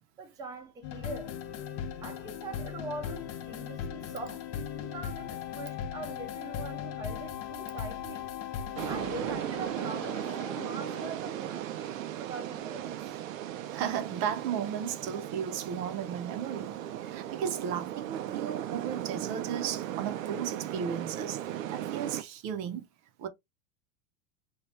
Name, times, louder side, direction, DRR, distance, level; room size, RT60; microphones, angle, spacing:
voice 1, 0.2-1.4 2.0-4.5 4.8-8.3 8.9-13.1, right 3 dB, 10° right, 0.5 m, -43 dB
sound 1, 0.8-11.2, left 9 dB, 40° left, 0.6 m, -39 dB
sound 2, 8.8-22.2, right 12 dB, 85° right, 0.6 m, -37 dB
voice 2, 13.7-22.9 23.2-23.3, right 8 dB, 50° right, 0.7 m, -35 dB
2.8 x 2.3 x 3.1 m
supercardioid pair, 125°, 39 cm